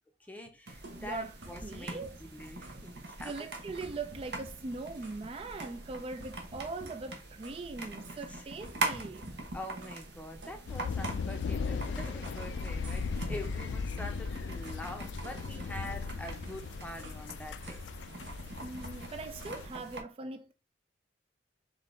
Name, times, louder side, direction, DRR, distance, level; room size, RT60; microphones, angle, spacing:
voice 1, 0.2-3.4 8.1-8.4 9.5-17.8, left 1 dB, 10° left, 0.7 m, -45 dB
sound 1, 0.7-20.0, right 2 dB, 60° right, 0.9 m, -43 dB
sound 2, 0.8-2.9 3.2-3.5 3.8-5.3 5.6-7.7 8.0-8.3 8.6-10.0 10.4-12.5 12.8-13.2 13.4-14.8 15.2-17.3 17.6-17.9 18.2-19.6, right 1 dB, 85° right, 1.2 m, -52 dB
voice 2, 1.0-1.3 1.6-2.2 3.2-9.3 18.6-20.5, right 3 dB, 30° right, 0.3 m, -41 dB
sound 3, 10.7-19.7, left 5 dB, 70° left, 0.3 m, -37 dB
3.8 x 3.7 x 3.2 m
head